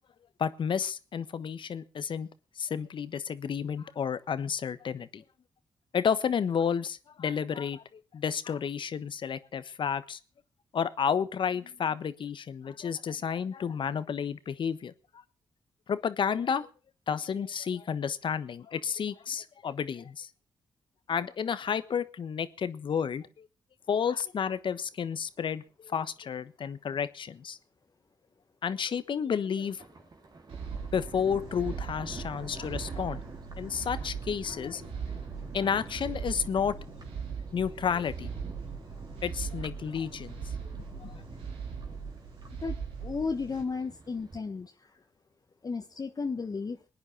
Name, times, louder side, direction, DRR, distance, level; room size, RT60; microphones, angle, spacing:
voice 1, 0.4-2.3 2.6-5.2 5.9-10.2 10.7-14.9 15.9-16.7 17.1-20.3 21.1-23.5 23.9-27.6 28.6-29.8 30.9-33.2 33.5-34.9 35.5-36.8 37.5-38.3 39.2-40.4 41.0-41.1, left 7 dB, 65° left, 14 dB, 1.3 m, -31 dB
Thunder, 29.6-44.4, right 3 dB, 45° right, 3.1 m, -48 dB
sound 1, 30.5-43.6, right 6 dB, 85° right, 2.8 m, -40 dB
voice 2, 42.6-45.0 45.6-46.8, left 4 dB, 45° left, 3 dB, 1.5 m, -34 dB
21.0 x 9.6 x 5.9 m, 0.36 s
supercardioid pair, 45°, 9 cm